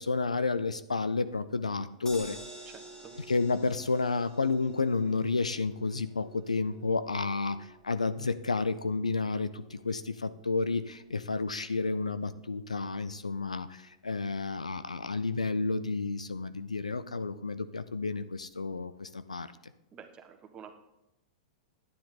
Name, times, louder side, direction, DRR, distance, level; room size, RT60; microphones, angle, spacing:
voice 1, 0.0-2.4 3.3-19.5, left 3 dB, 90° left, 14 dB, 0.5 m, -31 dB
sound 1, 2.1-14.3 14.7-14.8 15.1-15.2, right 1 dB, 15° left, 2.1 m, -52 dB
voice 2, 2.7-3.2 19.9-20.8, right 7 dB, 30° right, 6 dB, 1.3 m, -49 dB
11.0 x 9.5 x 3.8 m, 0.90 s
hypercardioid pair, 100°, 3 cm